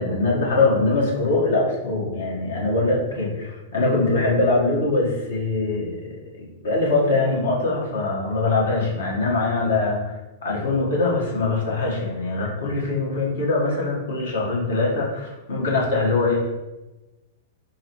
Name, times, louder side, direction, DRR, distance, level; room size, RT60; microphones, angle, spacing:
voice 1, 0.0-10.1 10.4-16.5, left 3 dB, 65° left, -3 dB, 1.0 m, -22 dB
5.3 x 2.0 x 2.8 m, 1.1 s
figure-of-eight pair, 100°, 0 cm